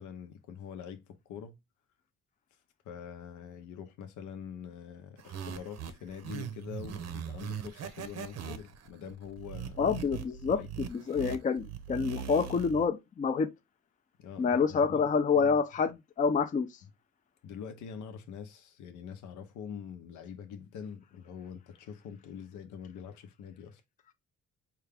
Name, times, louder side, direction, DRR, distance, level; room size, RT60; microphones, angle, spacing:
voice 1, 0.0-1.5 2.8-9.8 10.5-10.7 14.2-15.6 17.4-23.8, left 7 dB, 80° left, 0.7 m, -45 dB
sound 1, 5.2-12.9, right 8 dB, 60° right, 0.7 m, -40 dB
voice 2, 9.8-13.5 14.4-16.7, left 5 dB, 25° left, 0.4 m, -28 dB
4.6 x 2.3 x 3.4 m
cardioid pair, 90°, 30 cm